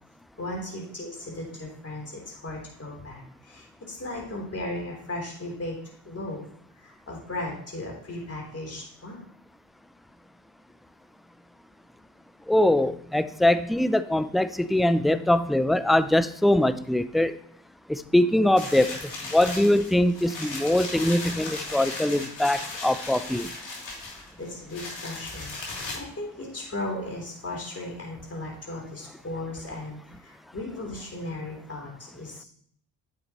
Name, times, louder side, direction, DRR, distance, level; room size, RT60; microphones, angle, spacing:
voice 1, 0.4-5.8 6.1-6.4 6.8-9.2 24.4-32.5, left 1 dB, 30° left, -2 dB, 3.5 m, -36 dB
voice 2, 12.5-17.4 17.9-19.0 19.3-23.5, left 1 dB, ahead, 14 dB, 0.4 m, -22 dB
sound 1, 18.6-25.9, left 3 dB, 65° left, 3.2 m, -36 dB
9.4 x 6.7 x 3.0 m, 0.67 s
supercardioid pair, 50°, 47 cm